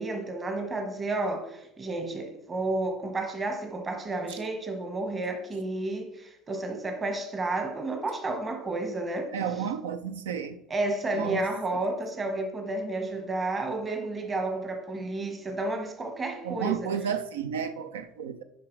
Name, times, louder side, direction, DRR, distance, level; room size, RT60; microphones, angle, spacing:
voice 1, 0.0-9.3 10.7-16.9, right 2 dB, 25° right, 1.2 m, -31 dB
voice 2, 9.3-10.6 11.1-11.4 16.4-18.4, right 7 dB, 75° right, 0.5 m, -32 dB
10.0 x 5.0 x 3.2 m
figure-of-eight pair, 70°, 0 cm